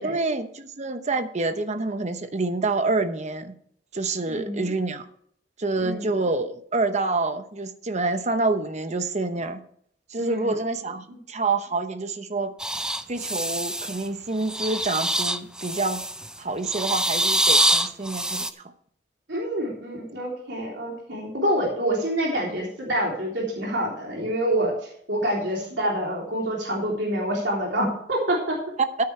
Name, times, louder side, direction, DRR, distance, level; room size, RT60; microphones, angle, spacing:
voice 1, 0.0-3.5 3.9-5.1 5.6-9.6 10.1-12.5 13.1-16.0 16.4-18.7, right 3 dB, 40° right, 9 dB, 0.9 m, -27 dB
voice 2, 4.3-4.7 5.8-6.0 10.2-10.5 11.1-11.2 19.3-28.6, right 1 dB, 75° right, -3 dB, 3.3 m, -27 dB
sound 1, 12.6-14.0 14.4-16.3 16.7-18.5, right 1 dB, 5° right, 0.6 m, -25 dB
13.5 x 9.6 x 3.3 m, 0.65 s
head